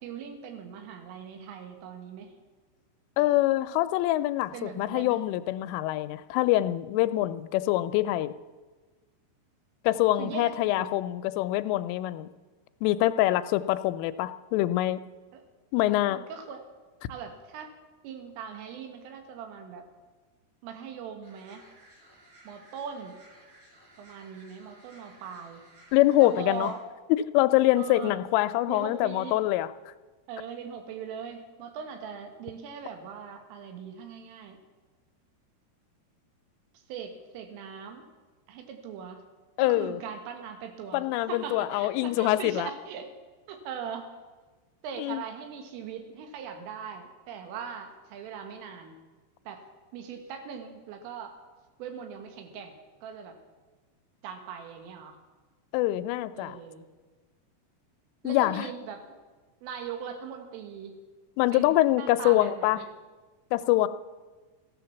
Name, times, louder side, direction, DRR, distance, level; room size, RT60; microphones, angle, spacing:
voice 1, 0.0-2.4 4.5-5.2 10.2-11.0 15.3-15.4 16.1-16.6 17.1-17.7 18.0-19.8 20.6-21.7 22.5-23.2 24.0-25.6 26.2-26.8 27.8-28.2 28.7-29.4 30.3-34.6 36.9-38.1 38.5-39.2 39.6-43.1 43.5-44.1 44.8-49.0 49.5-49.6 49.9-51.4 51.8-53.4 54.2-55.2 56.4-56.9 58.2-59.2 59.6-61.0 61.5-62.9, right 7 dB, 90° right, 5 dB, 4.1 m, -40 dB
voice 2, 3.2-8.3 9.8-12.3 12.8-15.0 15.7-16.2 25.9-26.7 27.1-29.7 39.6-40.0 40.9-42.7 45.0-45.2 55.7-56.6 58.2-58.7 61.4-62.8 63.5-63.9, left 15 dB, 85° left, 12 dB, 3.1 m, -25 dB
sound 1, 21.2-26.7, right 1 dB, 60° right, 5.5 m, -56 dB
15.0 x 11.0 x 7.0 m, 1.3 s
omnidirectional pair, 5.6 m